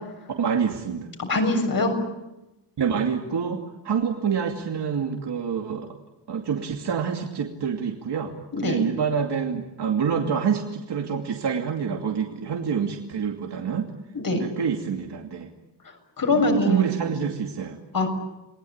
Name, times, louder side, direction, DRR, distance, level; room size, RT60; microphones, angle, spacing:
voice 1, 0.4-1.1 2.8-5.9 6.3-8.3 8.6-13.9 14.3-15.5 16.3-18.1, right 7 dB, 65° right, 2 dB, 2.7 m, -27 dB
voice 2, 1.2-1.9 8.5-8.8 14.1-14.4 16.2-16.8 17.9-18.1, left 2 dB, 50° left, 4 dB, 6.8 m, -23 dB
29.0 x 21.0 x 8.8 m, 0.98 s
wide cardioid pair, 145°, 43 cm